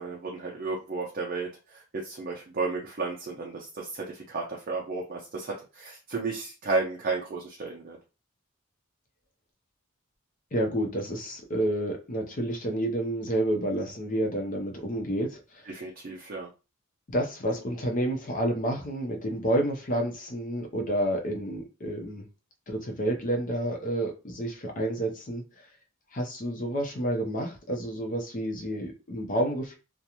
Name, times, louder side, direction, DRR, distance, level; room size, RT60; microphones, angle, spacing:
voice 1, 0.0-8.0 15.7-16.5, right 3 dB, 50° right, 0.5 m, -33 dB
voice 2, 10.5-15.7 17.1-22.2 22.7-25.4 26.1-29.8, right 1 dB, 40° left, 0.6 m, -29 dB
2.4 x 2.1 x 2.9 m
head